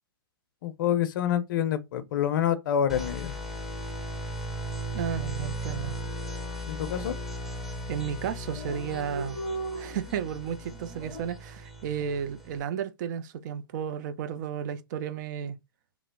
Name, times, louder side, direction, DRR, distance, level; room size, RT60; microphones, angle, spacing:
voice 1, 0.6-3.4 6.7-7.2, left 9 dB, 60° left, 0.5 m, -27 dB
sound 1, 2.9-12.6, equal, ahead, 0.6 m, -37 dB
voice 2, 4.9-6.0 7.9-9.4 9.7-15.6, right 8 dB, 50° right, 0.4 m, -33 dB
Dog, 5.0-5.3 5.6-5.7 5.9-6.6 7.2-7.4 7.8-7.9 8.0-8.1 8.3-11.2, right 3 dB, 20° right, 1.3 m, -38 dB
2.9 x 2.0 x 3.4 m
hypercardioid pair, 125°, 13 cm